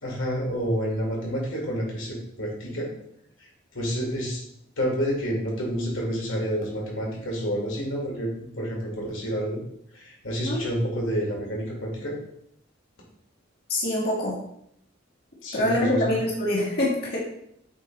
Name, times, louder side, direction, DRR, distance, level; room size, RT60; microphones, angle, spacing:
voice 1, 0.0-2.9 3.4-4.4 4.8-9.6 9.9-12.1 15.4-16.1, equal, 80° left, -3 dB, 2.1 m, -29 dB
voice 2, 13.7-14.3 15.5-17.2, left 1 dB, 50° left, -5 dB, 2.0 m, -25 dB
8.0 x 3.0 x 4.5 m, 0.73 s
head